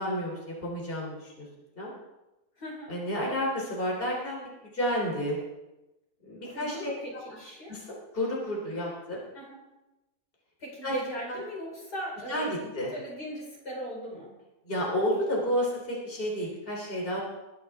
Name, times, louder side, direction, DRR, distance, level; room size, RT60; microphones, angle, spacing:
voice 1, 0.0-1.5 1.8-1.9 2.9-5.4 6.2-7.0 7.7-7.9 8.1-9.2 10.8-10.9 11.3-11.4 12.3-12.9 14.7-17.2, equal, 35° left, -3 dB, 3.4 m, -31 dB
voice 2, 2.6-2.9 6.4-7.7 9.3-9.6 10.6-14.3, equal, 75° left, -3 dB, 5.3 m, -39 dB
21.5 x 11.5 x 3.5 m, 1.0 s
omnidirectional pair, 1.7 m